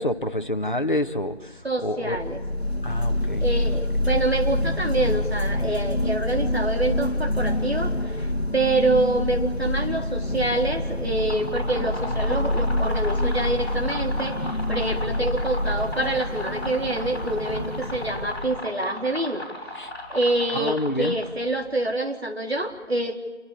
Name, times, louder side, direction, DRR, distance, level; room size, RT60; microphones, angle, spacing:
voice 1, 0.0-1.5 1.8-2.2 2.8-3.4 19.8-19.9 20.5-21.1, left 1 dB, 45° left, 7 dB, 1.6 m, -27 dB
voice 2, 1.6-2.4 3.4-19.5 20.1-23.2, right 2 dB, 60° right, 2 dB, 3.9 m, -26 dB
sound 1, 2.1-18.7, left 1 dB, 60° left, 1.8 m, -27 dB
sound 2, 11.1-21.4, left 1 dB, 20° left, 6.6 m, -36 dB
27.5 x 23.5 x 8.6 m, 1.1 s
figure-of-eight pair, 175°, 36 cm